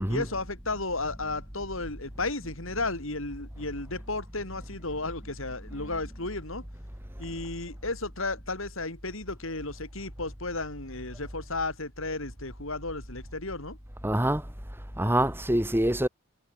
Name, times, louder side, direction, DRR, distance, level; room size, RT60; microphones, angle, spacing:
voice 1, 0.1-6.6 7.2-13.8, left 2 dB, 70° left, 5.6 m, -34 dB
voice 2, 14.0-14.4 15.0-16.1, right 1 dB, 10° right, 3.0 m, -25 dB
head